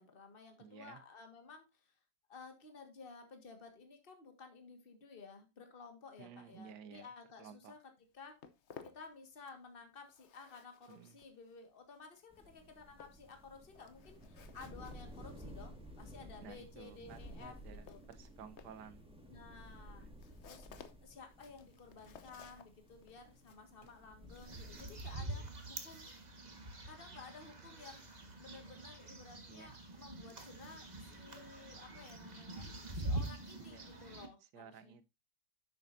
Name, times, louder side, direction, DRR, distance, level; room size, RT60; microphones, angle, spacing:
voice 1, 0.0-2.0 2.3-7.8 8.1-8.4 8.8-18.0 19.3-20.1 20.4-20.7 21.0-26.1 26.9-32.7 32.9-35.0, left 4 dB, 35° left, 1.8 m, -55 dB
voice 2, 0.6-1.0 6.2-7.1 7.4-7.7 10.9-11.2 16.4-19.1 20.0-20.1 29.5-29.7 33.6-33.9 34.4-35.1, right 7 dB, 75° right, 1.5 m, -54 dB
Walk footsteps, 8.0-9.7 10.0-25.4, left 7 dB, 50° left, 0.9 m, -60 dB
sound 1, 12.3-25.0, equal, 5° right, 1.6 m, -54 dB
sound 2, 24.3-34.3, right 1 dB, 25° right, 1.4 m, -45 dB
10.5 x 7.7 x 2.6 m
omnidirectional pair, 1.8 m